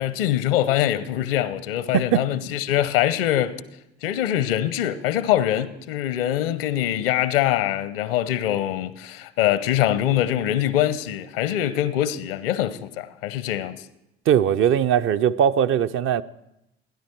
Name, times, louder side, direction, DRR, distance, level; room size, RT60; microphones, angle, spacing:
voice 1, 0.0-3.6 4.0-13.8, left 12 dB, 75° left, 0.7 m, -23 dB
voice 2, 14.3-16.2, right 9 dB, 45° right, 0.5 m, -20 dB
16.5 x 10.5 x 4.5 m
figure-of-eight pair, 55°, 30 cm